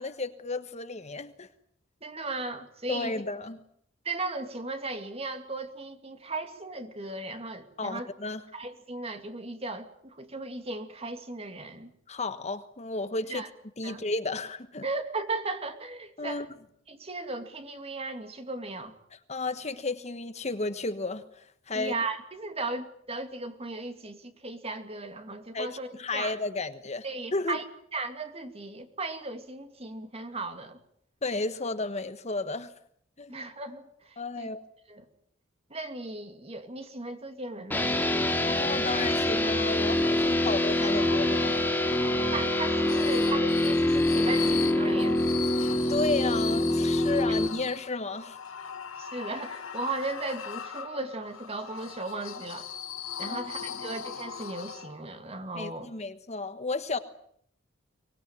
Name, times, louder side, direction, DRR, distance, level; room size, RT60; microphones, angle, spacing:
voice 1, 0.0-1.5 2.9-3.6 7.8-8.4 12.1-13.4 13.8-14.9 16.2-16.5 19.3-21.9 25.5-25.7 26.0-27.0 27.3-27.6 31.2-32.7 33.2-33.3 34.2-34.6 38.3-41.6 45.9-48.4 53.3-53.5 55.5-57.0, left 3 dB, 35° left, 11 dB, 1.3 m, -33 dB
voice 2, 2.0-3.1 4.0-8.1 8.5-11.9 13.3-13.5 13.8-14.0 14.8-16.5 16.9-18.9 21.7-26.4 27.0-27.6 27.9-30.8 33.3-34.5 34.9-35.1 35.7-37.9 42.3-45.2 49.0-52.7 53.2-55.9, right 2 dB, 30° right, 7 dB, 2.6 m, -36 dB
sound 1, 37.7-47.5, left 1 dB, 10° left, 2.5 m, -25 dB
sound 2, 39.4-55.2, left 8 dB, 85° left, 2.0 m, -39 dB
24.0 x 20.0 x 9.2 m, 0.68 s
head